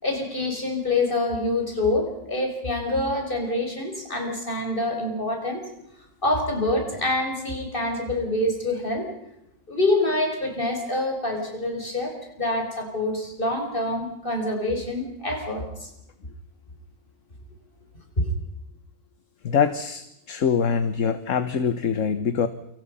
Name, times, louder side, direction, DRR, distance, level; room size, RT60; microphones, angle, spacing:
voice 1, 0.0-5.6 6.2-9.1 9.7-15.9 18.2-18.3, left 2 dB, 35° left, 2 dB, 5.7 m, -26 dB
voice 2, 19.4-22.5, left 6 dB, 55° left, 12 dB, 1.4 m, -24 dB
28.5 x 25.0 x 5.6 m, 0.83 s
omnidirectional pair, 1.6 m